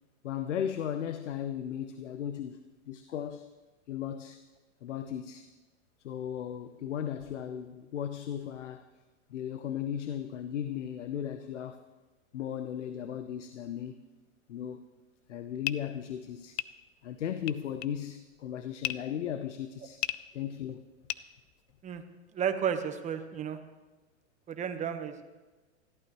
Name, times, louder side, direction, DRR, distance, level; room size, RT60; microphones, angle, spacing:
voice 1, 0.2-3.5 3.9-4.4 4.8-5.5 6.0-8.9 9.3-11.9 12.3-14.0 14.5-14.9 15.3-16.6 17.0-20.1 20.3-20.9, left 9 dB, 90° left, 0.8 m, -36 dB
sound 1, 15.3-22.0, left 17 dB, 35° left, 0.4 m, -39 dB
voice 2, 22.3-23.6 24.5-25.2, right 8 dB, 20° right, 1.1 m, -32 dB
20.5 x 14.5 x 3.1 m
hypercardioid pair, 130°, 35 cm